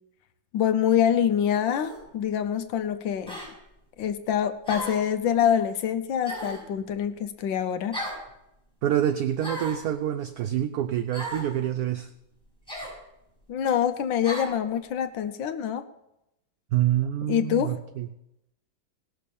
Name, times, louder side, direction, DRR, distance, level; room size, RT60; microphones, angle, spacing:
voice 1, 0.5-3.4 4.0-8.0 13.5-15.8 17.3-17.8, left 9 dB, 85° left, 9 dB, 1.5 m, -25 dB
sound 1, 1.8-2.1 3.3-3.5 4.7-5.1 6.2-6.7 7.9-8.2 9.4-9.8 11.1-11.5 12.7-13.0 14.2-14.5, equal, 5° left, 6.6 m, -35 dB
voice 2, 8.8-12.1 16.7-18.1, right 11 dB, 70° right, 11 dB, 0.9 m, -26 dB
18.5 x 6.4 x 6.8 m, 0.85 s
omnidirectional pair, 2.0 m